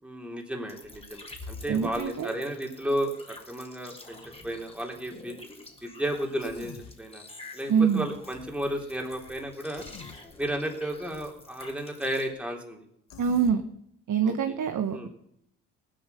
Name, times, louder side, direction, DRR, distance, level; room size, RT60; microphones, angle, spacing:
voice 1, 0.0-4.2 4.4-5.4 5.8-7.2 7.5-9.8 10.4-12.8 14.2-14.6 14.9-15.1, right 1 dB, 5° right, 0 dB, 3.5 m, -33 dB
sound 1, 0.7-12.3, left 2 dB, 15° left, 3.7 m, -48 dB
voice 2, 1.7-2.3 7.7-8.1 13.2-13.6 14.1-15.1, right 7 dB, 50° right, 7 dB, 1.4 m, -25 dB
Human voice, 6.4-7.0 9.7-10.2 13.1-13.6, left 7 dB, 55° left, 1.7 m, -45 dB
18.5 x 9.0 x 6.8 m, 0.74 s
hypercardioid pair, 55°, 39 cm